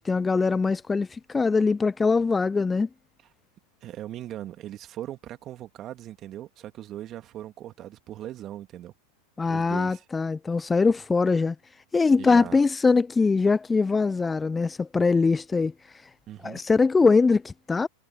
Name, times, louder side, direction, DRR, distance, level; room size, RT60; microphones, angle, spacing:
voice 1, 0.0-2.9 9.4-11.6 11.9-16.0 16.4-17.9, left 4 dB, 15° left, 0.3 m, -22 dB
voice 2, 3.8-8.9 9.5-10.0 12.1-12.6 16.3-16.6, right 12 dB, 40° right, 2.3 m, -39 dB
hypercardioid pair, 100°, 0 cm